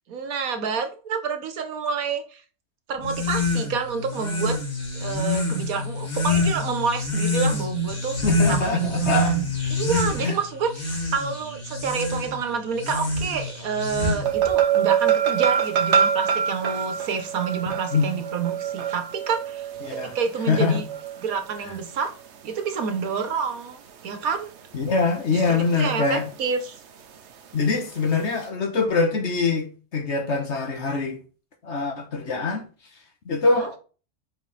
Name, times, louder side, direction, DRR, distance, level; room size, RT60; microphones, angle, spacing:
voice 1, 0.1-2.4 2.9-4.6 4.9-8.2 8.5-20.8 21.2-22.1 22.4-24.5 25.3-26.8 33.5-33.7, right 6 dB, 80° right, 1.5 m, -28 dB
sound 1, 3.0-14.5, left 3 dB, 85° left, 2.8 m, -27 dB
voice 2, 8.2-9.3 10.2-10.4 17.9-18.1 19.8-20.1 20.5-20.8 24.7-26.3 27.5-31.2 31.6-32.7 33.2-33.8, left 4 dB, 55° left, 1.4 m, -23 dB
sound 2, 14.2-21.6 25.4-25.8 26.2-26.3, right 8 dB, 55° right, 1.0 m, -25 dB
5.2 x 4.8 x 4.0 m
omnidirectional pair, 1.5 m